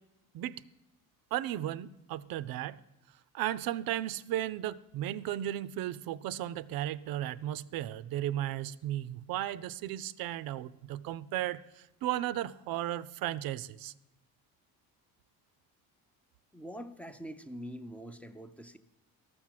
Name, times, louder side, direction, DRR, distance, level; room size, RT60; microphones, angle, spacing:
voice 1, 1.3-2.8 3.3-13.9, right 13 dB, 70° right, 17 dB, 0.5 m, -35 dB
voice 2, 16.5-18.8, equal, 5° left, 10 dB, 0.4 m, -44 dB
13.5 x 6.1 x 7.4 m, 0.92 s
cardioid pair, 145°, 37 cm